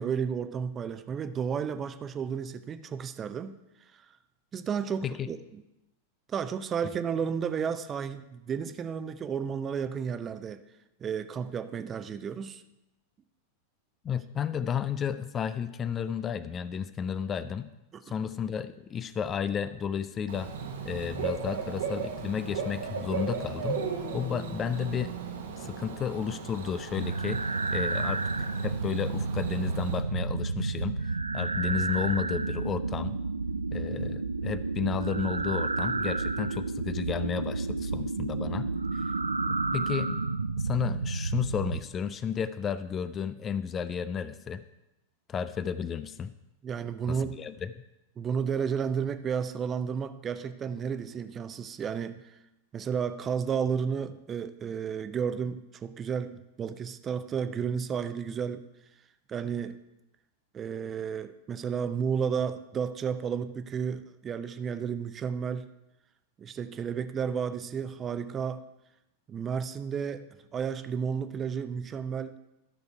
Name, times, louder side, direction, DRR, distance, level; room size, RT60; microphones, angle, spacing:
voice 1, 0.0-3.6 3.9-4.0 4.5-5.4 6.3-10.6 11.0-12.6 17.9-18.1 46.6-47.4 48.2-52.2 52.7-58.6 59.3-59.8 60.5-65.7 66.4-68.6 69.3-72.3, right 7 dB, 25° right, 12 dB, 0.6 m, -32 dB
voice 2, 14.0-17.7 18.0-20.5 20.8-23.8 24.1-25.1 25.6-27.4 27.7-33.2 33.7-39.0 39.5-40.2 40.6-44.6 45.3-46.3 47.1-47.7, left 7 dB, 25° left, 14 dB, 0.4 m, -33 dB
Bird / Cricket, 20.3-30.0, right 5 dB, 60° right, 1.1 m, -36 dB
sound 1, 26.9-41.8, right 3 dB, 80° right, 0.3 m, -31 dB
12.0 x 6.4 x 4.6 m, 0.94 s
figure-of-eight pair, 90°, 0 cm